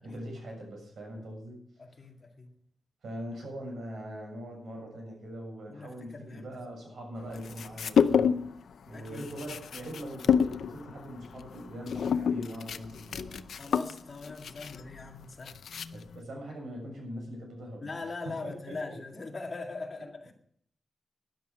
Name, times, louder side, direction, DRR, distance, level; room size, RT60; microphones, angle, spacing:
voice 1, 0.0-1.6 3.0-8.4 8.9-13.5 15.9-18.0 18.2-19.0, equal, 90° right, 1 dB, 7.1 m, -42 dB
voice 2, 1.8-2.5 5.7-6.6 8.9-9.3 13.6-15.5 17.8-20.3, left 3 dB, 35° left, 2 dB, 2.0 m, -41 dB
sound 1, 7.3-8.6 8.9-16.2, left 7 dB, 90° left, 0.6 m, -29 dB
12.5 x 11.0 x 6.4 m, 0.65 s
wide cardioid pair, 165°, 0 cm